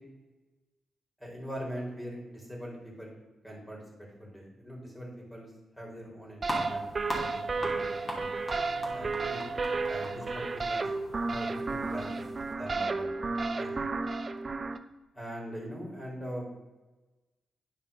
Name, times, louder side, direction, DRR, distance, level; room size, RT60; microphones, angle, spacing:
voice 1, 1.2-3.2 3.4-5.5 5.7-6.9 7.2-8.3 8.9-9.5 9.9-10.9 11.3-12.2 12.5-13.1 13.5-13.9 15.1-16.5, equal, 5° left, -2 dB, 3.4 m, -41 dB
sound 1, 6.4-12.5, equal, 25° left, 2.7 m, -41 dB
sound 2, 6.4-14.8, right 3 dB, 35° right, 0.6 m, -32 dB
10.5 x 5.4 x 5.4 m, 1.1 s
cardioid pair, 95°, 0 cm